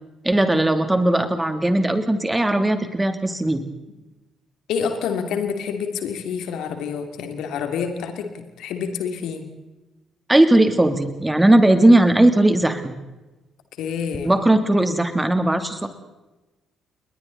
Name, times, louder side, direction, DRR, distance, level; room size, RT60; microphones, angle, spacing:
voice 1, 0.2-3.6 10.3-12.9 14.2-15.9, right 1 dB, 15° right, 8 dB, 3.0 m, -18 dB
voice 2, 4.7-9.4 13.8-14.3, left 6 dB, 65° left, 6 dB, 2.8 m, -27 dB
29.5 x 21.5 x 4.1 m, 1.1 s
figure-of-eight pair, 45°, 0 cm